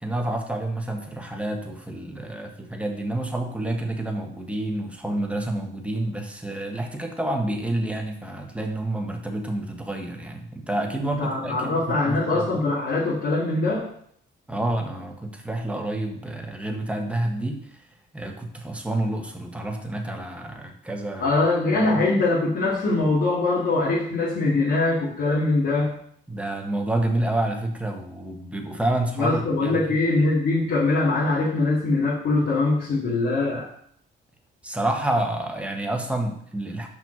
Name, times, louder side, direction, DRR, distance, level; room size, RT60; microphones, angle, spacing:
voice 1, 0.0-12.5 14.5-17.8 18.1-21.4 21.9-22.0 26.3-30.0 34.6-36.9, right 1 dB, 5° right, 2 dB, 1.5 m, -29 dB
voice 2, 11.0-13.9 21.2-25.9 29.2-33.7, left 2 dB, 65° left, -7 dB, 2.5 m, -22 dB
5.8 x 5.5 x 6.2 m, 0.66 s
cardioid pair, 90°, 20 cm